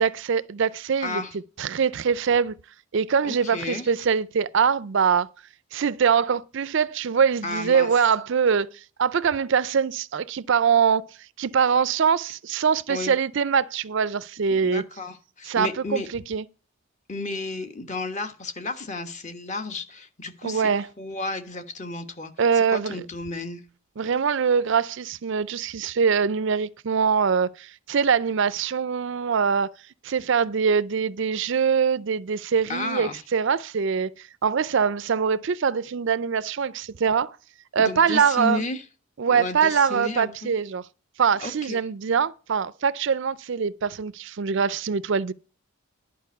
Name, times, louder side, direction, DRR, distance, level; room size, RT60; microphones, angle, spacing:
voice 1, 0.0-1.2 1.6-2.5 2.9-5.3 5.7-14.8 15.4-16.4 20.4-20.9 22.4-23.0 24.0-29.7 30.0-37.4 37.7-38.6 39.2-40.9 41.2-45.3, right 6 dB, 55° right, 0.4 m, -23 dB
voice 2, 1.0-1.3 3.2-3.8 7.4-7.9 12.9-13.1 14.5-16.1 17.1-20.7 21.0-23.6 32.7-33.2 37.8-38.8 39.3-40.3 41.4-41.8, left 2 dB, 35° left, 1.3 m, -32 dB
11.0 x 5.3 x 6.6 m
head